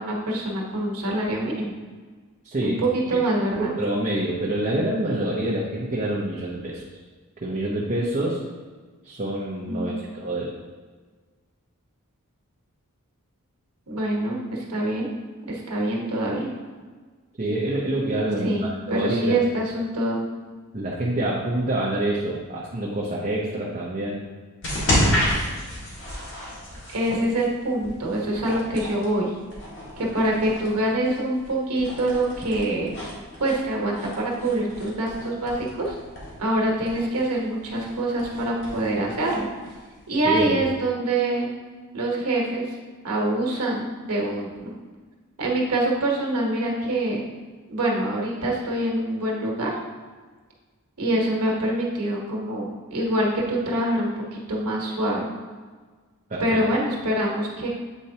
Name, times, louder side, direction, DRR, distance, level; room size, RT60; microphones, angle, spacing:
voice 1, 0.0-1.7 2.6-3.7 9.7-10.1 13.9-15.1 15.5-16.5 18.4-20.2 26.9-29.3 30.0-32.9 33.4-36.0 36.4-39.5 40.1-41.5 41.9-42.7 43.0-44.7 45.4-47.2 47.7-49.8 51.0-55.3 56.4-57.7, right 1 dB, 90° right, -2 dB, 1.2 m, -25 dB
voice 2, 2.4-2.8 3.6-6.8 7.4-8.4 9.0-10.5 17.4-19.6 20.7-24.2 40.2-40.6 56.3-56.6, right 1 dB, 35° right, -5 dB, 0.8 m, -26 dB
sound 1, 24.6-40.4, equal, 55° left, 1.8 m, -31 dB
8.2 x 4.4 x 2.8 m, 1.4 s
head